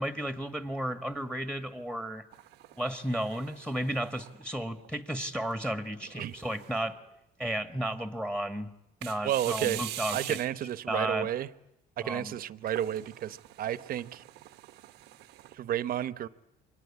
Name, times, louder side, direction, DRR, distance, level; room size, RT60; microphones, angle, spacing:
voice 1, 0.0-2.2 2.8-7.0 7.4-8.7 9.0-10.4 10.9-11.3 12.0-12.4, right 1 dB, 5° left, 8 dB, 1.6 m, -33 dB
sound 1, 2.3-4.9 5.4-5.5 6.2-6.9 9.0-10.8 12.7-15.6, right 15 dB, 85° right, 1.0 m, -44 dB
voice 2, 9.2-9.8 10.1-11.5 12.0-14.2 15.5-16.3, right 11 dB, 60° right, 15 dB, 1.0 m, -31 dB
28.5 x 24.5 x 8.5 m, 0.84 s
cardioid pair, 110°, 17 cm